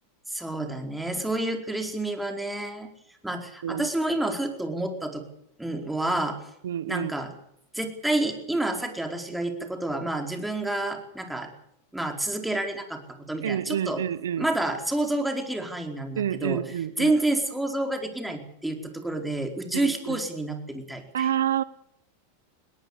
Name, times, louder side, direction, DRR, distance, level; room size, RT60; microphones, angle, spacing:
voice 1, 0.3-2.9 3.2-5.2 5.6-6.4 6.9-7.3 7.7-11.5 11.9-14.0 14.4-16.6 17.0-21.3, right 2 dB, 5° right, 4.6 m, -29 dB
voice 2, 6.6-7.1 13.4-14.5 16.2-17.1 19.7-20.2 21.1-21.6, right 10 dB, 80° right, 0.9 m, -28 dB
21.5 x 19.0 x 8.4 m
hypercardioid pair, 105°, 0 cm